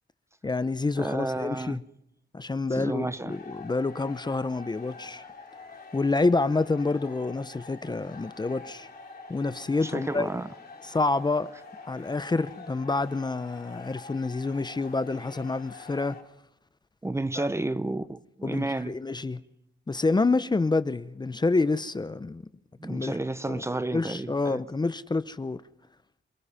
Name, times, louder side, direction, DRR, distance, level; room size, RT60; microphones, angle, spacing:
voice 1, 0.4-1.8 2.3-5.3 5.9-8.9 9.3-10.3 10.8-11.5 11.8-16.2 17.4-17.5 18.4-19.4 19.9-22.5 22.8-23.2 23.5-23.6 23.9-25.6, left 3 dB, 25° left, 0.7 m, -28 dB
voice 2, 1.0-1.8 2.7-3.4 9.8-10.5 17.0-18.9 22.8-24.6, right 2 dB, 15° right, 0.8 m, -31 dB
sound 1, 3.3-16.2, left 4 dB, 50° left, 4.1 m, -46 dB
27.5 x 20.0 x 5.7 m
wide cardioid pair, 120°, 19 cm